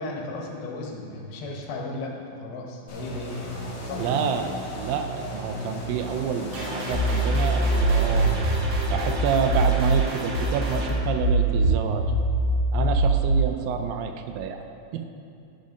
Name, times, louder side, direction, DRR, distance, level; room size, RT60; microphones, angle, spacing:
voice 1, 0.0-4.2, left 2 dB, 80° left, 0 dB, 2.9 m, -35 dB
sound 1, 2.9-8.4, left 1 dB, 50° left, 2.2 m, -35 dB
voice 2, 4.0-8.3 8.9-12.0 12.7-14.6 14.9-15.1, right 7 dB, 80° right, 6 dB, 2.1 m, -28 dB
sound 2, 6.5-10.9, right 1 dB, 65° right, 2.7 m, -33 dB
sound 3, 6.9-9.9 10.3-13.4, right 1 dB, 45° right, 2.0 m, -23 dB
10.5 x 5.3 x 5.2 m, 2.5 s
omnidirectional pair, 4.3 m